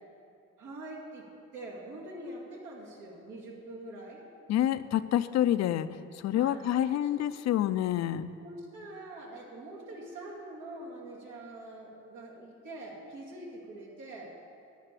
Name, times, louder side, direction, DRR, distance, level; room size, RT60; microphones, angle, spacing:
voice 1, 0.6-1.3 1.5-4.2 6.3-6.9 7.1-7.2 8.4-14.3, right 1 dB, 80° right, -4 dB, 2.5 m, -44 dB
voice 2, 4.5-5.9 6.1-8.3, left 11 dB, 60° left, 14 dB, 0.5 m, -27 dB
10.5 x 5.8 x 8.3 m, 2.6 s
cardioid pair, 90°, 30 cm